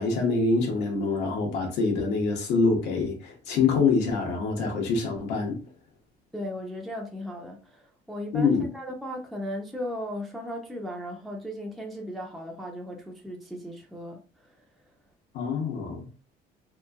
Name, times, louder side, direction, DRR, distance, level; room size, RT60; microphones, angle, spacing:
voice 1, 0.0-5.6 8.3-8.7 15.3-16.0, left 4 dB, 90° left, 0.9 m, -25 dB
voice 2, 6.3-14.6, equal, ahead, 0.5 m, -37 dB
2.9 x 2.6 x 2.3 m
cardioid pair, 110°, 17 cm